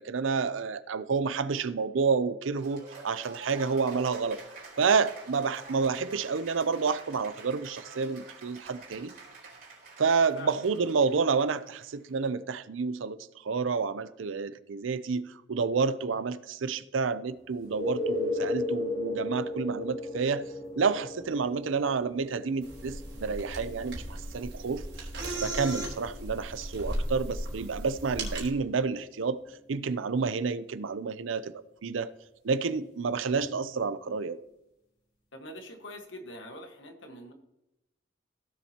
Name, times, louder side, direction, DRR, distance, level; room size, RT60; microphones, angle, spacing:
voice 1, 0.0-4.4 4.8-9.1 10.0-13.2 13.4-20.4 20.7-24.0 24.3-25.1 25.4-29.4 29.7-31.5 31.8-32.1 32.4-34.4, right 5 dB, 90° right, 0.5 m, -29 dB
Cheering / Applause, 2.5-12.1, right 3 dB, 45° right, 4.0 m, -47 dB
voice 2, 10.4-10.9 35.3-37.3, left 1 dB, 80° left, 1.5 m, -44 dB
sound 1, 17.6-29.1 33.4-33.5, left 2 dB, 55° left, 4.2 m, -37 dB
sound 2, 22.6-28.5, right 1 dB, 70° right, 3.2 m, -36 dB
16.0 x 7.2 x 2.9 m
head